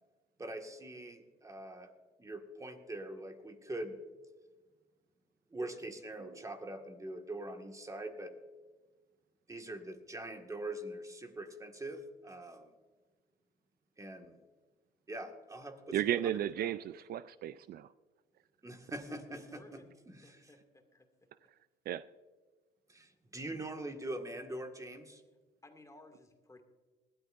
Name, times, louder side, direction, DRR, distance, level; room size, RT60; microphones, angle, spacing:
voice 1, 0.4-1.9 2.2-4.0 5.5-8.3 9.5-12.7 14.0-14.4 15.1-16.0 16.6-16.7 18.6-19.8 20.1-20.4 22.9-25.2, right 1 dB, 20° right, 5 dB, 1.8 m, -43 dB
voice 2, 15.9-17.9 21.9-22.0, right 11 dB, 60° right, 16 dB, 0.4 m, -34 dB
voice 3, 19.3-20.0 20.2-21.3 25.6-26.6, left 2 dB, 15° left, 6 dB, 2.3 m, -57 dB
20.5 x 13.0 x 2.6 m, 1.3 s
supercardioid pair, 85°, 18 cm